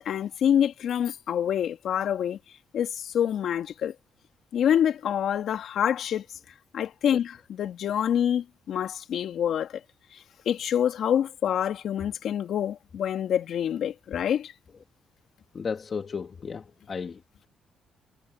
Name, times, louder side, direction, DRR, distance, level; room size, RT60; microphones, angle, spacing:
voice 1, 0.0-2.4 2.7-3.9 4.5-6.2 6.7-9.8 10.1-14.5, left 9 dB, 70° left, 2.9 m, -26 dB
voice 2, 15.5-17.5, left 5 dB, 40° left, 3.5 m, -34 dB
cardioid pair, 90°, 0 cm